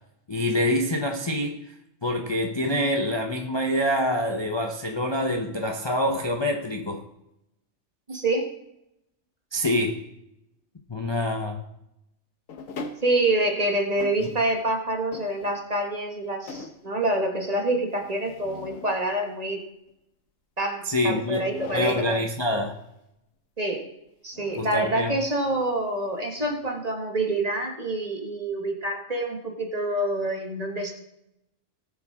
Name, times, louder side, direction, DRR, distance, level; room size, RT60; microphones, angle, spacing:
voice 1, 0.3-1.6 2.0-7.0 9.5-10.0 10.9-11.6 14.2-14.3 20.8-21.5 21.7-22.8 24.6-25.1, left 1 dB, 25° left, 2 dB, 0.7 m, -26 dB
voice 2, 8.1-8.5 13.0-19.6 20.6-22.2 23.6-23.9 24.2-30.9, right 1 dB, 30° right, 2 dB, 1.5 m, -26 dB
sound 1, 12.5-13.4 13.9-14.7 15.1-15.8 16.2-16.9 18.0-19.0 21.3-22.2 24.3-25.1 25.5-25.7 26.3-26.7, left 3 dB, 75° left, 1.4 m, -41 dB
19.0 x 7.1 x 3.6 m, 0.85 s
omnidirectional pair, 1.4 m